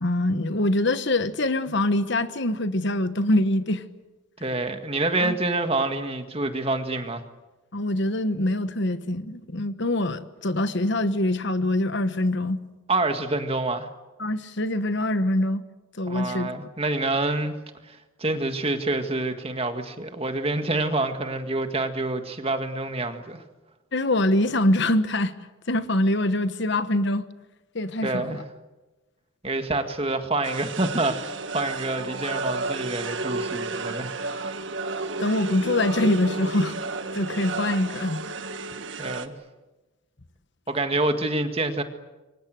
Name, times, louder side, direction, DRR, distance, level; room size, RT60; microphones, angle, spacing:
voice 1, 0.0-3.8 5.2-5.4 7.7-12.6 14.2-15.6 16.0-16.5 23.9-25.3 25.7-27.2 27.7-28.4 35.2-36.8 37.1-38.2, left 1 dB, 55° left, 1.2 m, -24 dB
voice 2, 4.4-7.2 12.9-13.9 16.1-17.6 17.9-23.4 28.0-28.4 29.4-34.1 34.4-34.5 39.0-39.3 40.7-41.8, right 2 dB, 25° right, 1.9 m, -27 dB
sound 1, 30.4-39.3, right 3 dB, 60° right, 1.7 m, -32 dB
27.5 x 24.5 x 7.8 m
head